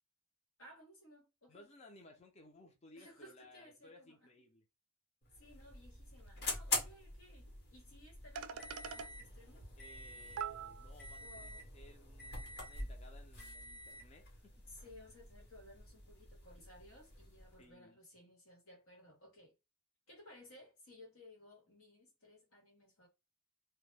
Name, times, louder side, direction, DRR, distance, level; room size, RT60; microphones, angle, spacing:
voice 1, 0.6-1.6 3.0-4.1 5.3-9.7 11.2-11.7 14.6-19.5 20.1-23.1, left 1 dB, 90° left, 1.2 m, -59 dB
voice 2, 1.5-4.7 9.8-14.6 17.6-18.0, left 2 dB, 30° left, 0.5 m, -60 dB
sound 1, 5.2-17.7, left 2 dB, 50° left, 1.0 m, -45 dB
sound 2, 6.3-6.4 6.7-6.8 8.0-8.1 8.4-9.1 10.0-10.1 10.4-11.1, right 7 dB, 85° right, 0.3 m, -43 dB
2.2 x 2.1 x 3.1 m
head